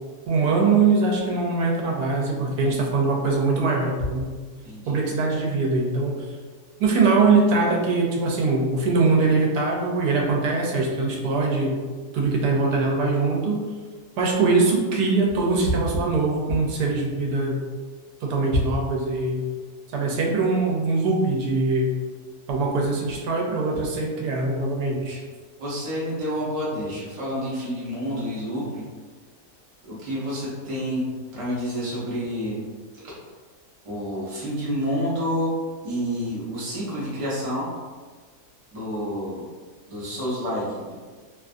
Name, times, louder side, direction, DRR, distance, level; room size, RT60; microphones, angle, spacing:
voice 1, 0.3-4.4 4.9-6.3 6.8-11.8 12.1-13.6 14.2-17.6 18.2-19.4 19.9-21.9 22.5-25.2, right 3 dB, 90° right, -1 dB, 1.2 m, -22 dB
voice 2, 4.6-5.0 25.6-28.8 29.8-31.0 31.3-32.5 32.9-33.1 33.8-35.5 35.8-37.7 38.7-39.4 39.9-41.0, equal, 30° right, -8 dB, 0.7 m, -29 dB
2.9 x 2.4 x 2.4 m, 1.4 s
omnidirectional pair, 1.7 m